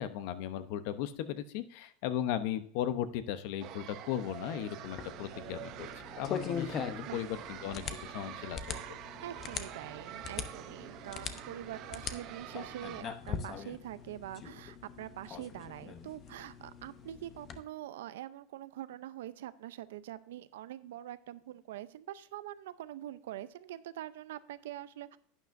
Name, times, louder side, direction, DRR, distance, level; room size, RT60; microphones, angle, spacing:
voice 1, 0.0-5.9 6.2-6.8 7.1-8.8, left 11 dB, 65° left, 12 dB, 0.8 m, -36 dB
sound 1, 3.6-13.0, right 12 dB, 50° right, 0.7 m, -46 dB
sound 2, 4.8-17.6, left 7 dB, 35° left, 0.8 m, -42 dB
voice 2, 9.2-25.2, right 13 dB, 85° right, 15 dB, 0.6 m, -44 dB
11.5 x 9.3 x 2.6 m, 0.63 s
supercardioid pair, 130°, 0 cm